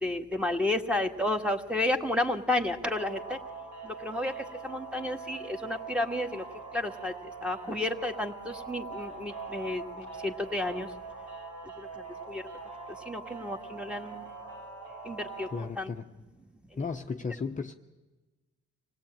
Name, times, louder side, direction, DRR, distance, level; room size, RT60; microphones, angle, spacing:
voice 1, 0.0-3.4 3.8-6.4 6.7-7.1 7.4-10.9 11.8-11.9 12.3-12.4 13.0-14.3 15.0-15.9 16.8-16.9, left 1 dB, 5° right, 5 dB, 1.7 m, -31 dB
sound 1, 2.9-15.6, right 4 dB, 85° right, 5.7 m, -43 dB
voice 2, 15.5-16.1 16.8-17.7, left 5 dB, 25° left, 4 dB, 0.9 m, -34 dB
26.5 x 17.5 x 8.8 m, 1.2 s
cardioid pair, 90°, 30 cm